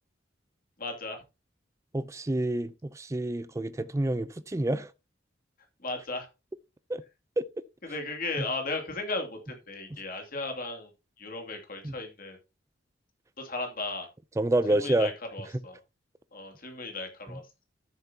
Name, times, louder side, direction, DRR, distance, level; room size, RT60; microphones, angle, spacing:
voice 1, 0.8-1.2 5.8-6.3 7.8-10.9 11.2-12.4 13.4-14.1 14.7-15.8 16.3-17.4, left 3 dB, 50° left, 2.5 m, -36 dB
voice 2, 1.9-4.9 6.9-7.0 7.4-7.5 11.8-11.9 14.4-15.1, right 1 dB, 15° right, 0.4 m, -28 dB
13.0 x 7.1 x 2.8 m
head